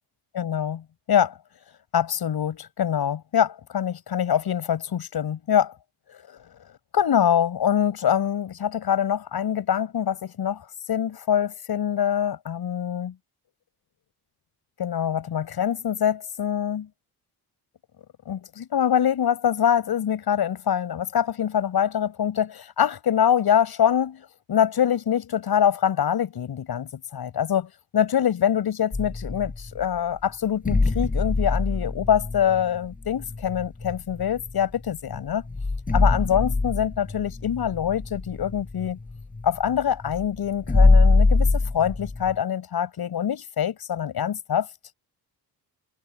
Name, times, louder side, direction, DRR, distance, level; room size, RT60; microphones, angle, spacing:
voice 1, 0.3-1.4 1.9-5.7 6.1-6.4 6.9-13.1 14.8-16.9 18.3-35.4 35.9-39.0 39.4-44.7, left 9 dB, 65° left, 7.5 m, -24 dB
sound 1, 28.9-29.8 30.7-34.6 35.1-35.2 35.5-42.4, left 3 dB, 20° left, 6.2 m, -23 dB
cardioid pair, 125°, 40 cm